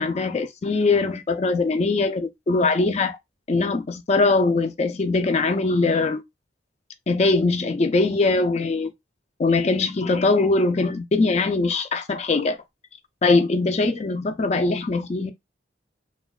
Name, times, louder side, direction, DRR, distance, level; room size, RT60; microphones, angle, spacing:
voice 1, 0.0-3.2 3.5-6.2 7.1-8.9 9.4-12.6 13.2-15.3, left 3 dB, 35° left, 0.4 m, -21 dB
2.9 x 2.1 x 2.3 m
head